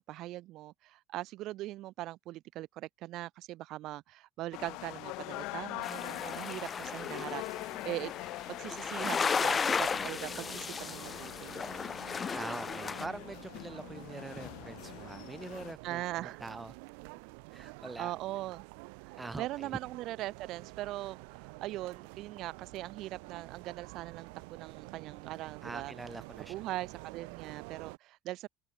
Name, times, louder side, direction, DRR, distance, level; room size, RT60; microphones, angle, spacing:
voice 1, 0.0-8.1 8.5-11.7 15.8-16.4 18.0-18.6 19.0-25.9 26.4-28.5, right 16 dB, 50° right, 1.7 m, -41 dB
sound 1, 4.5-15.7, left 23 dB, 60° left, 6.2 m, -44 dB
sound 2, 5.8-13.1, left 5 dB, 20° left, 1.4 m, -35 dB
sound 3, 9.3-28.0, right 34 dB, 85° right, 3.1 m, -49 dB
voice 2, 12.3-16.7 17.5-18.1 19.2-19.8 25.6-26.5, right 2 dB, 10° right, 3.2 m, -44 dB
open air
cardioid pair, 160°, 0 cm